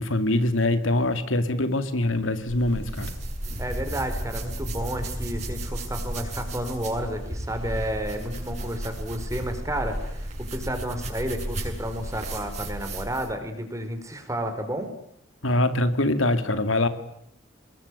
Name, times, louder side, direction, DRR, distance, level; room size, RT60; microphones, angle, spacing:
voice 1, 0.0-3.1 15.4-16.9, left 1 dB, 85° left, 10 dB, 2.4 m, -23 dB
sound 1, 2.4-13.4, right 1 dB, 35° right, 7.4 m, -33 dB
voice 2, 3.6-14.9, right 1 dB, 15° right, 7 dB, 4.5 m, -31 dB
25.5 x 21.5 x 9.8 m, 0.73 s
head